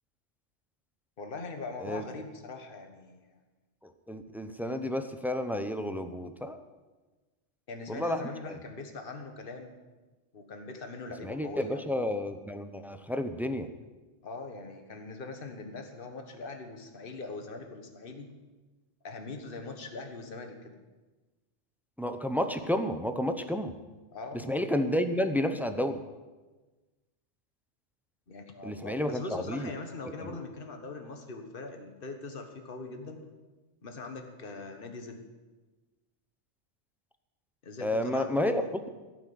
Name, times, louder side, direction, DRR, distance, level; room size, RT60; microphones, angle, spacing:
voice 1, 1.2-3.4 7.7-9.7 10.3-11.8 14.2-18.3 19.0-20.8 24.1-24.4 28.3-33.2 33.8-35.2 37.6-38.7, left 3 dB, 45° left, 5 dB, 1.5 m, -41 dB
voice 2, 3.8-6.6 7.9-8.5 11.2-13.7 22.0-23.7 24.4-26.0 28.6-29.7 30.2-30.3 37.8-38.6, left 1 dB, ahead, 8 dB, 0.5 m, -31 dB
16.0 x 5.9 x 9.3 m, 1.2 s
omnidirectional pair, 1.3 m